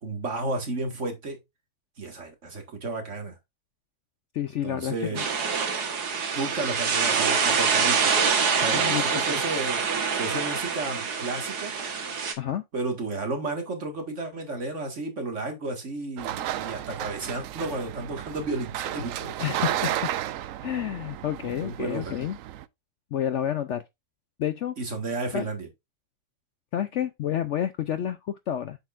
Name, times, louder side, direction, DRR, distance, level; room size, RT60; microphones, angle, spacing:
voice 1, 0.0-1.4 2.0-3.4 4.6-5.3 6.3-8.3 8.6-11.8 12.7-19.3 21.6-22.1 24.8-25.7, right 2 dB, 50° right, 2.1 m, -32 dB
voice 2, 4.3-5.2 8.7-9.4 12.4-12.6 19.4-19.9 20.6-22.4 23.1-23.8 24.4-24.8 25.3-25.5 26.7-28.8, left 10 dB, 65° left, 0.8 m, -29 dB
sound 1, 5.2-12.3, right 6 dB, 85° right, 1.9 m, -25 dB
sound 2, 16.2-22.6, right 12 dB, 70° right, 0.9 m, -33 dB
8.0 x 6.3 x 2.5 m
omnidirectional pair, 1.6 m